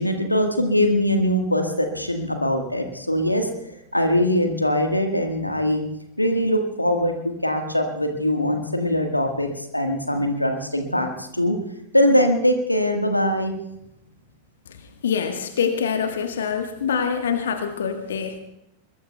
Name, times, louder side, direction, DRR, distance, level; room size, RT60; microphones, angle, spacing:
voice 1, 0.0-5.8 6.2-11.6 11.9-13.5, left 1 dB, 85° left, 5 dB, 1.5 m, -22 dB
voice 2, 15.0-18.4, left 7 dB, 65° left, 6 dB, 1.3 m, -25 dB
21.5 x 21.5 x 2.3 m, 0.82 s
figure-of-eight pair, 90°, 0 cm